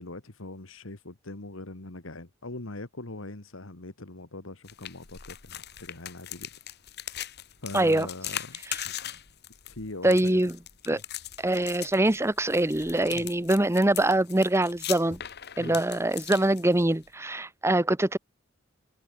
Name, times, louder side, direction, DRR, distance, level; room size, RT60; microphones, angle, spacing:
voice 1, 0.0-6.5 7.6-8.6 9.6-10.4 10.9-11.0 13.1-13.3 15.6-15.8, left 2 dB, 75° left, 1.9 m, -41 dB
sound 1, 4.6-17.1, left 11 dB, 55° left, 1.7 m, -40 dB
voice 2, 7.7-8.1 10.0-10.6 10.9-11.0 11.4-15.2 15.6-18.2, right 1 dB, 15° right, 0.9 m, -24 dB
head